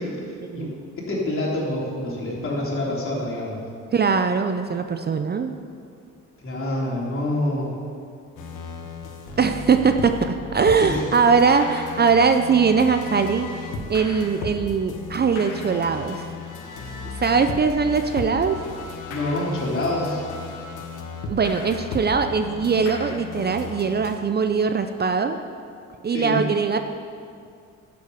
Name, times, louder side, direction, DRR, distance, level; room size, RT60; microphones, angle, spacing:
voice 1, 0.0-3.6 6.4-7.7 10.8-11.1 19.1-20.2 26.1-26.4, left 1 dB, 45° left, -4 dB, 3.5 m, -27 dB
voice 2, 3.9-5.5 9.4-13.5 13.9-16.3 17.2-18.6 21.3-25.4 26.0-26.8, right 5 dB, 35° right, 7 dB, 0.6 m, -21 dB
sound 1, 8.4-24.2, left 4 dB, 90° left, 1.4 m, -35 dB
10.5 x 7.7 x 7.0 m, 2.3 s
cardioid pair, 90°, 30 cm